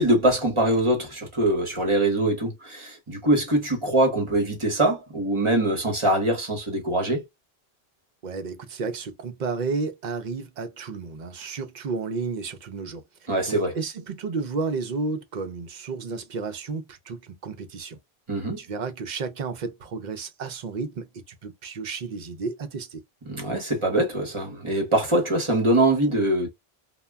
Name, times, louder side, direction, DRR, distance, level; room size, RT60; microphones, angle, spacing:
voice 1, 0.0-7.2 13.3-13.7 18.3-18.6 23.3-26.5, right 1 dB, 30° right, 0.9 m, -23 dB
voice 2, 8.2-13.0 13.3-18.0 18.6-23.0, right 4 dB, 55° right, 0.6 m, -32 dB
2.2 x 2.1 x 3.4 m
omnidirectional pair, 1.0 m